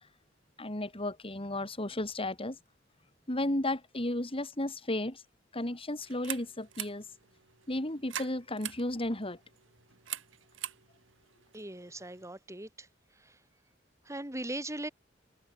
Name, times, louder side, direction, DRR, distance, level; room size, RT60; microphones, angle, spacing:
voice 1, 0.6-2.6 3.3-5.2 5.5-7.0 7.7-9.4, left 1 dB, 30° left, 3.3 m, -33 dB
sound 1, 6.0-12.3, right 11 dB, 85° right, 4.9 m, -44 dB
voice 2, 11.5-12.9 13.2-13.4 14.1-14.9, right 1 dB, 15° right, 3.5 m, -39 dB
head